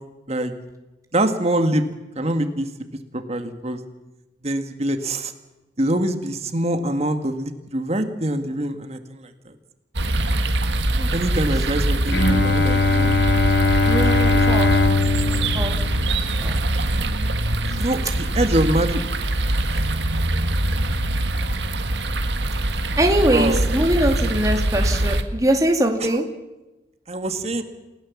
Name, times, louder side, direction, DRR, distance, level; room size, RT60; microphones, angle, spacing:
voice 1, 1.1-1.8 2.2-2.7 3.1-3.8 4.4-5.3 5.8-9.3 11.1-13.1 13.9-14.0 14.3-14.4 17.8-19.0 23.2-23.6 27.1-27.6, right 1 dB, 35° right, 7 dB, 1.8 m, -24 dB
sound 1, 9.9-25.2, right 1 dB, 85° right, 1.7 m, -23 dB
voice 2, 11.0-11.4 13.8-14.7 15.0-15.8 16.0-16.6 23.0-26.3, right 1 dB, 20° right, 2 dB, 2.2 m, -22 dB
Bowed string instrument, 12.1-17.8, left 3 dB, 85° left, 1.8 m, -21 dB
29.0 x 17.0 x 7.3 m, 1.0 s
head